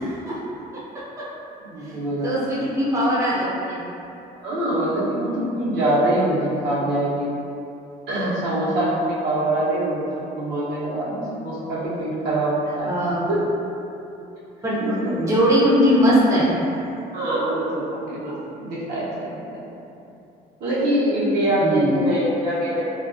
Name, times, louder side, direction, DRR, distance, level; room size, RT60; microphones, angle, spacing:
voice 1, 0.0-0.4 1.8-3.8 12.9-13.3 14.6-14.8 15.2-16.6 21.6-22.0, equal, 20° right, -8 dB, 0.5 m, -20 dB
voice 2, 1.6-2.3 4.4-7.3 8.1-10.0 10.4-12.9 13.3-13.4 14.8-15.3 17.1-19.6 20.6-22.8, right 1 dB, 75° right, -9 dB, 0.8 m, -24 dB
2.3 x 2.3 x 2.5 m, 2.8 s
cardioid pair, 110°, 17 cm